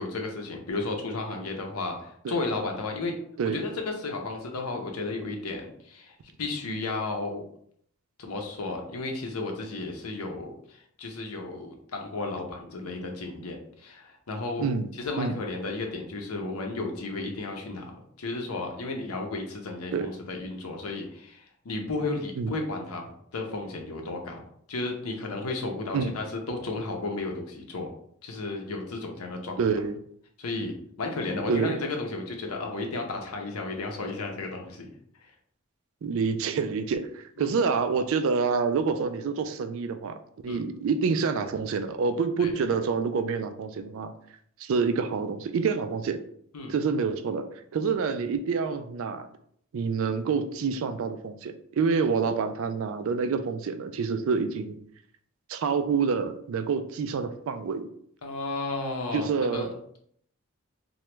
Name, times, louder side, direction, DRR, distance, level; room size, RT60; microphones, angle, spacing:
voice 1, 0.0-3.1 3.4-7.5 8.2-14.7 14.9-17.9 18.2-24.4 24.7-27.9 28.2-29.6 30.4-34.9 37.4-37.5 40.5-40.6 42.4-42.5 46.5-46.7 58.2-59.7, left 3 dB, 85° left, 2 dB, 0.7 m, -33 dB
voice 2, 29.6-29.9 31.5-31.8 36.0-40.2 40.4-44.1 44.6-46.2 46.7-47.5 47.7-49.3 49.7-54.8 55.5-57.9 59.1-59.7, right 5 dB, 65° right, 9 dB, 0.3 m, -27 dB
2.9 x 2.2 x 3.2 m, 0.66 s
head